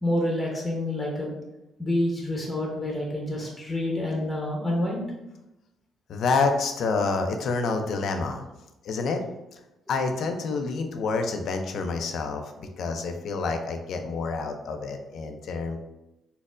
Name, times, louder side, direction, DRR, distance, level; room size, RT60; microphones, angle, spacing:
voice 1, 0.0-1.3 1.8-5.0, left 1 dB, 15° left, -2 dB, 0.8 m, -28 dB
voice 2, 6.1-8.4 8.8-9.2 9.9-15.8, left 4 dB, 65° left, 5 dB, 0.4 m, -28 dB
4.1 x 2.0 x 2.5 m, 0.97 s
cardioid pair, 90°, 0 cm